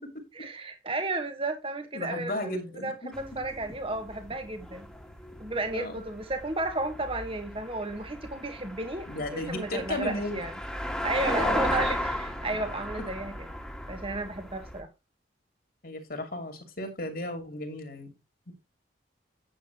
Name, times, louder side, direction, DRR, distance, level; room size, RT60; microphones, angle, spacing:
voice 1, 0.3-4.9 5.4-10.5 11.0-13.5 13.9-14.9, right 2 dB, 30° right, 1.8 m, -33 dB
voice 2, 1.9-3.1 5.7-6.0 9.1-10.4 11.4-11.7 15.8-18.1 18.5-18.6, left 1 dB, 55° left, 2.8 m, -35 dB
sound 1, 3.1-14.8, left 1 dB, 5° left, 2.0 m, -35 dB
10.5 x 8.4 x 3.1 m
head